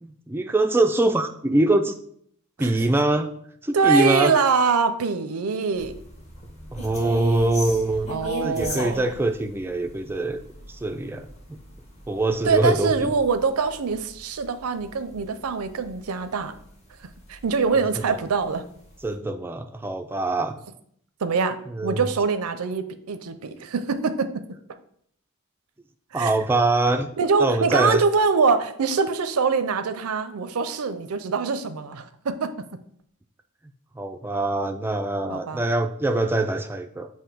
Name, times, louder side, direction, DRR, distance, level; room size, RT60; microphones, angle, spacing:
voice 1, 0.0-1.9 2.6-3.3 3.6-4.3 6.7-10.4 10.7-11.6 12.1-13.1 18.1-18.2 19.0-20.6 21.7-22.0 26.1-27.1 27.4-28.0 33.9-37.1, right 2 dB, 10° right, 7 dB, 0.3 m, -23 dB
voice 2, 3.7-5.9 8.1-9.1 12.5-16.6 17.3-18.6 21.2-24.4 26.1-26.3 27.2-32.7 35.3-35.6, right 5 dB, 90° right, 11 dB, 0.5 m, -24 dB
sound 1, 5.8-16.2 16.5-16.7 17.1-17.9 18.3-18.4 18.7-19.1, equal, 30° left, 1.2 m, -37 dB
7.7 x 2.7 x 5.0 m, 0.67 s
head